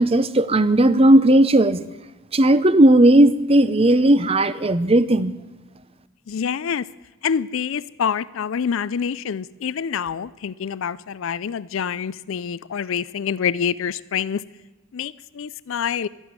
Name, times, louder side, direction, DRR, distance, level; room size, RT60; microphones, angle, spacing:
voice 1, 0.0-1.9 2.3-5.3, right 1 dB, 25° right, 15 dB, 0.6 m, -15 dB
voice 2, 6.3-6.9 7.2-14.4 14.9-16.1, left 7 dB, 65° left, 18 dB, 0.4 m, -26 dB
12.5 x 12.0 x 9.5 m, 1.1 s
head